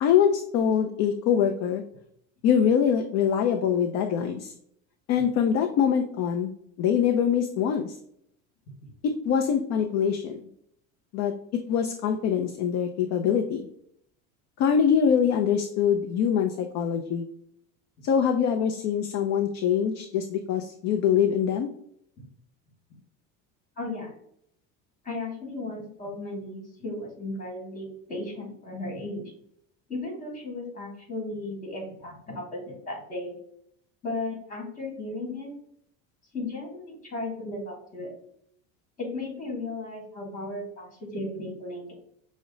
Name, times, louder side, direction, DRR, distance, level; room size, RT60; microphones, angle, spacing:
voice 1, 0.0-1.8 2.4-4.5 5.1-6.5 6.8-8.0 9.0-10.4 11.1-13.6 14.6-17.2 18.0-21.7, left 8 dB, 45° left, 4 dB, 0.5 m, -24 dB
voice 2, 23.8-24.1 25.0-29.2 29.9-33.4 34.0-35.5 36.3-38.1 39.0-41.9, left 2 dB, 20° left, -1 dB, 1.8 m, -35 dB
5.9 x 2.1 x 3.7 m, 0.70 s
cardioid pair, 135°, 39 cm